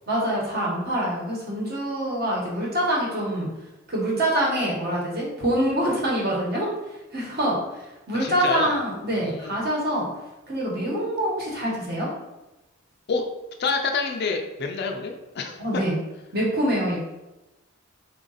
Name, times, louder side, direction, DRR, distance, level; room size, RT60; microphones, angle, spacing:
voice 1, 0.1-3.5 3.9-6.7 7.1-10.1 10.5-12.1 15.6-16.0 16.3-17.0, right 1 dB, 50° right, -3 dB, 1.1 m, -25 dB
voice 2, 8.2-8.7 9.1-9.5 13.1-13.3 13.6-15.8, left 4 dB, 50° left, 4 dB, 0.4 m, -28 dB
3.7 x 2.5 x 3.9 m, 1.0 s
head